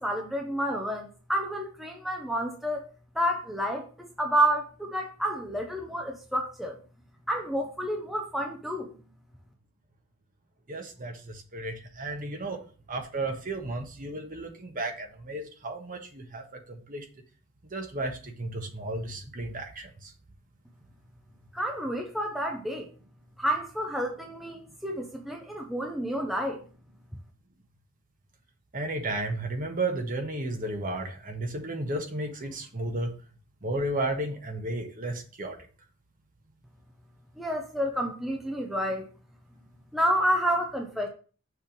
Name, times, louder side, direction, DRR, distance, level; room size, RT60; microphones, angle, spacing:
voice 1, 0.0-6.8 7.3-8.9 21.5-22.9 23.4-26.6 37.4-39.1 39.9-41.1, equal, ahead, 1 dB, 0.7 m, -29 dB
voice 2, 10.7-12.6 12.9-17.1 17.7-20.1 28.7-33.2 33.6-35.6, right 2 dB, 40° right, 3 dB, 1.3 m, -33 dB
6.6 x 3.4 x 6.1 m, 0.38 s
head